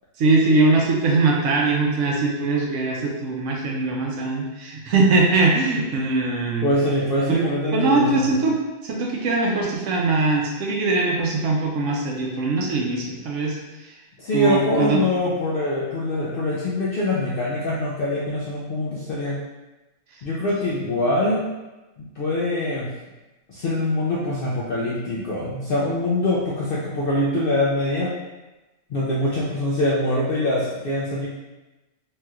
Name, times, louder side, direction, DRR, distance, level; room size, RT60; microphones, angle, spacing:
voice 1, 0.2-6.7 7.3-7.5 7.7-8.6 8.8-14.0 14.3-15.0, right 3 dB, 70° right, -1 dB, 0.8 m, -21 dB
voice 2, 6.6-8.2 14.2-19.4 20.2-21.4 22.2-22.9 23.5-28.1 28.9-31.3, left 1 dB, 65° left, -6 dB, 0.5 m, -23 dB
3.1 x 2.7 x 2.3 m, 1.1 s
omnidirectional pair, 1.4 m